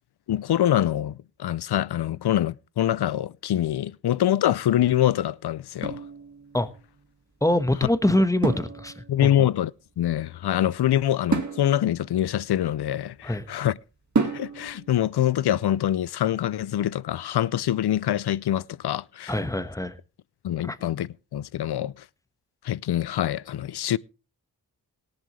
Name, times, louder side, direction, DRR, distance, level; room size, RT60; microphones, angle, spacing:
voice 1, 0.3-6.0 9.1-9.7 10.0-13.8 14.3-19.4 20.4-21.9 22.6-24.0, left 11 dB, 75° left, 0.5 m, -25 dB
sound 1, 5.8-6.8 8.4-9.3 11.3-13.3 14.1-14.9, right 4 dB, 45° right, 2.0 m, -30 dB
voice 2, 7.4-9.5 13.2-13.5 19.3-19.9 20.6-20.8, left 1 dB, 10° left, 1.3 m, -24 dB
18.0 x 10.5 x 3.2 m
cardioid pair, 40°, 40 cm